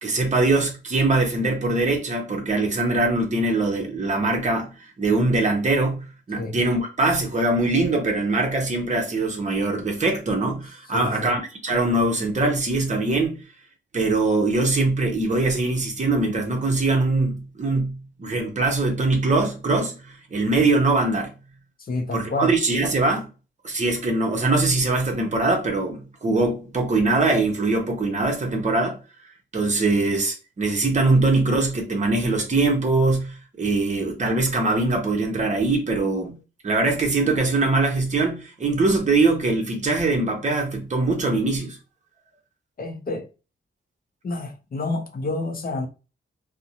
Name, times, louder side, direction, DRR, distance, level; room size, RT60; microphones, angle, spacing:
voice 1, 0.0-13.4 13.9-21.3 22.1-23.3 23.6-29.0 29.5-36.3 36.6-41.8, right 2 dB, 35° right, 0.7 m, -22 dB
voice 2, 10.9-11.3 21.8-22.5 42.8-43.2 44.2-45.9, left 3 dB, 45° left, 0.5 m, -29 dB
2.5 x 2.1 x 2.7 m
wide cardioid pair, 150°, 21 cm